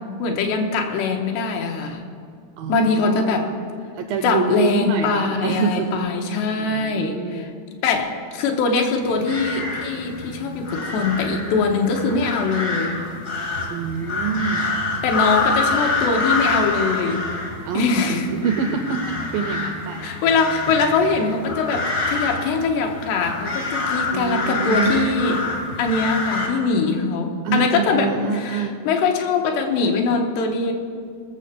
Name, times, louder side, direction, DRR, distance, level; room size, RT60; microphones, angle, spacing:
voice 1, 0.2-2.0 2.7-3.5 4.2-7.5 7.8-13.0 15.0-17.3 17.7-18.3 20.0-25.4 25.8-28.1 28.4-30.7, left 4 dB, 85° left, 3 dB, 3.3 m, -22 dB
voice 2, 2.6-3.5 3.9-6.0 6.6-7.6 13.7-14.7 17.7-20.1 24.1-25.4 27.4-28.8, right 6 dB, 80° right, 5 dB, 2.0 m, -26 dB
sound 1, 9.0-26.5, left 3 dB, 65° left, 0.9 m, -27 dB
20.0 x 6.8 x 6.7 m, 2.2 s
omnidirectional pair, 4.8 m